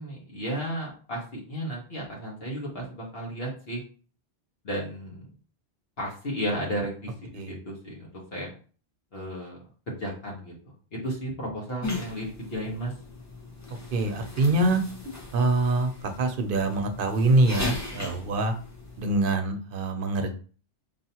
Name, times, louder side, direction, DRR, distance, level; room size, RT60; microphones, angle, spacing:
voice 1, 0.0-3.8 4.6-5.2 6.0-8.5 9.1-9.6 9.9-10.5 10.9-12.9, equal, 65° left, -3 dB, 1.3 m, -34 dB
sound 1, 11.8-19.2, left 3 dB, 20° left, 0.7 m, -38 dB
voice 2, 13.9-14.8 15.3-15.9 16.2-18.5 19.0-20.3, right 2 dB, 60° right, 6 dB, 0.8 m, -24 dB
5.2 x 2.7 x 2.8 m, 0.40 s
omnidirectional pair, 1.1 m